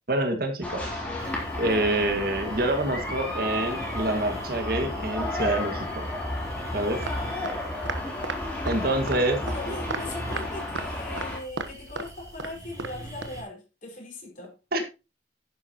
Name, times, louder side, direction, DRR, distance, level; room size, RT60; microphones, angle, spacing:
voice 1, 0.1-1.0 1.6-6.1 6.7-7.0 8.6-9.4 14.7-14.8, right 1 dB, 55° right, 5 dB, 1.9 m, -26 dB
sound 1, 0.6-11.4, left 1 dB, 5° left, 3.5 m, -32 dB
sound 2, 1.2-13.4, right 1 dB, 20° right, 5.2 m, -44 dB
sound 3, 7.0-7.1 7.4-7.6 7.8-8.4 8.7-8.8 9.1-9.2 9.5-9.6 9.9-10.0 10.3-10.4 10.7-10.9 11.2-11.7 12.0-12.1 12.4-12.5 12.8-12.9 13.2-13.3, right 4 dB, 90° right, 1.2 m, -33 dB
voice 2, 9.4-14.6, left 2 dB, 45° left, 0 dB, 5.2 m, -40 dB
11.0 x 10.0 x 3.0 m, 0.28 s
head